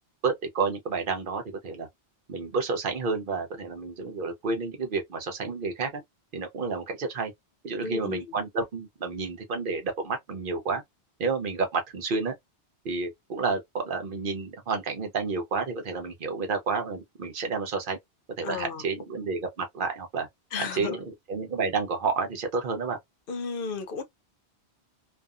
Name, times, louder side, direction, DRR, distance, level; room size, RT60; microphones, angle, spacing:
voice 1, 0.2-1.9 2.3-6.0 6.3-7.3 7.6-10.8 11.2-12.3 12.8-18.0 18.4-20.3 20.6-21.0 21.3-23.0, right 4 dB, 55° right, 0.8 m, -30 dB
voice 2, 7.8-8.2 18.4-18.8 20.5-21.0 23.3-24.0, left 5 dB, 60° left, 0.7 m, -33 dB
2.6 x 2.3 x 2.3 m
omnidirectional pair, 1.1 m